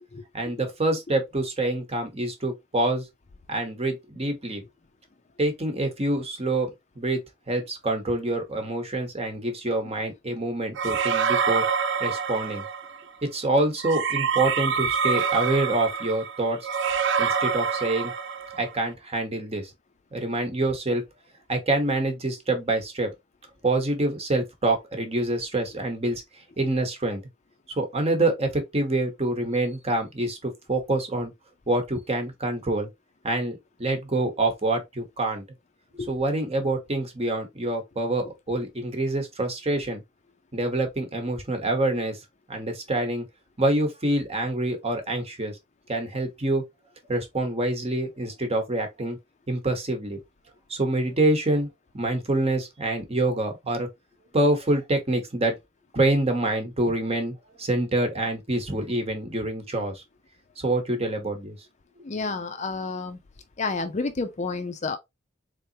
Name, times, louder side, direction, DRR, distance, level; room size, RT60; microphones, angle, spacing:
voice 1, 0.3-3.0 3.5-4.6 5.4-6.7 7.0-7.2 7.5-11.6 12.0-12.6 13.2-16.7 17.2-18.1 18.6-19.7 20.1-21.0 21.5-23.1 23.6-26.2 26.6-27.2 27.8-31.3 31.7-32.9 33.2-35.4 36.1-40.0 40.5-42.2 42.5-43.3 43.6-45.6 45.9-46.6 47.1-49.2 49.5-50.2 50.7-51.7 51.9-53.9 54.3-55.6 55.9-60.0 60.6-61.6, right 2 dB, 30° right, 1.0 m, -26 dB
sound 1, 10.8-13.0 13.8-18.7, right 6 dB, 65° right, 0.5 m, -26 dB
voice 2, 62.0-63.2 63.6-65.0, left 3 dB, 35° left, 0.5 m, -30 dB
3.8 x 3.4 x 2.8 m
head